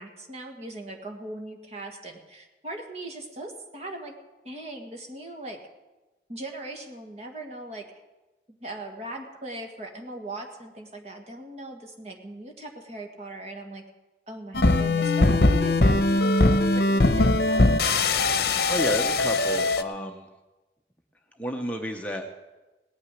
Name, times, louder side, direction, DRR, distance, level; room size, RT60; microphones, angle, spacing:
voice 1, 0.0-4.2 4.4-5.6 6.3-7.9 8.5-13.8 14.3-17.6, right 2 dB, 40° right, 3 dB, 1.7 m, -39 dB
sound 1, 14.5-19.8, left 2 dB, 60° left, 0.8 m, -21 dB
voice 2, 18.7-20.3 21.4-22.3, equal, 10° left, 2 dB, 0.8 m, -31 dB
18.0 x 6.3 x 9.7 m, 1.1 s
head